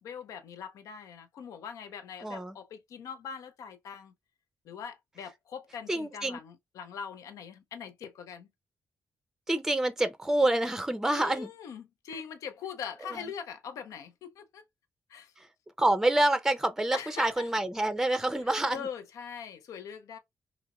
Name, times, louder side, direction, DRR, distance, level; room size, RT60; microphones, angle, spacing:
voice 1, 0.0-4.1 4.6-8.5 11.1-14.6 15.1-15.3 16.9-17.5 18.7-20.2, left 7 dB, 75° left, 0.6 m, -42 dB
voice 2, 2.2-2.6 5.9-6.4 9.5-11.5 12.1-12.2 13.1-13.2 15.4-15.5 15.8-18.9, right 1 dB, 10° right, 0.5 m, -27 dB
2.9 x 2.8 x 2.3 m
supercardioid pair, 45°, 6 cm